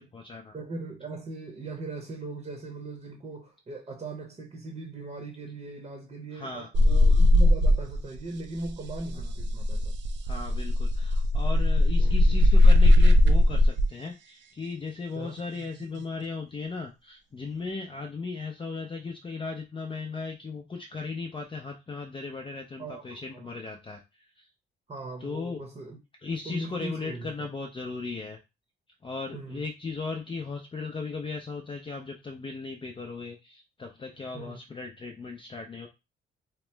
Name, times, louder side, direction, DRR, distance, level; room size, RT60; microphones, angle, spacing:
voice 1, 0.0-0.5 6.3-6.7 9.1-9.3 10.3-24.5 25.2-25.6 26.2-28.4 29.0-35.9, left 4 dB, 25° left, 0.5 m, -37 dB
voice 2, 0.5-9.9 12.0-12.3 15.1-15.4 22.8-23.5 24.9-26.0 26.4-27.5 29.3-29.6 34.3-34.6, right 2 dB, 30° right, 0.8 m, -39 dB
sound 1, 6.7-8.2 8.4-13.9 15.6-16.0, left 1 dB, 65° right, 0.5 m, -19 dB
2.9 x 2.0 x 3.2 m
cardioid pair, 90°, 20 cm